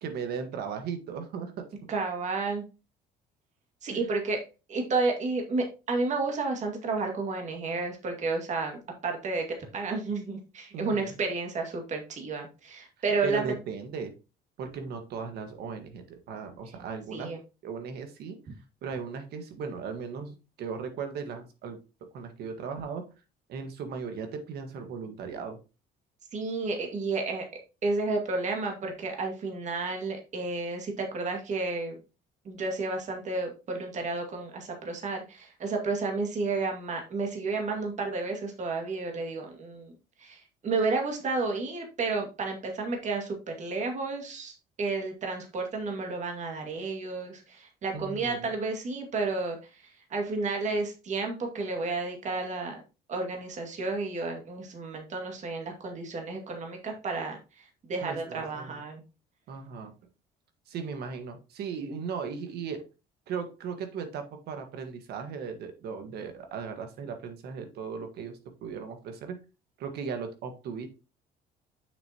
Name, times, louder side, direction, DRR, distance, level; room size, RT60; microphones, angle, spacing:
voice 1, 0.0-1.7 3.9-4.0 10.7-11.1 13.2-14.1 14.6-17.3 17.6-18.4 18.8-21.8 22.1-23.0 23.5-25.6 47.9-48.5 58.0-58.8 59.5-59.9 60.7-62.8 63.3-69.3 69.8-70.9, right 6 dB, 75° right, 6 dB, 1.5 m, -37 dB
voice 2, 1.9-2.6 3.8-4.4 4.7-13.6 17.1-17.4 26.3-27.5 27.8-32.0 32.5-39.9 40.2-44.5 44.8-49.8 50.1-52.8 53.1-59.0, right 3 dB, 45° right, 2 dB, 2.2 m, -31 dB
7.0 x 6.5 x 2.9 m, 0.31 s
cardioid pair, 110°, 17 cm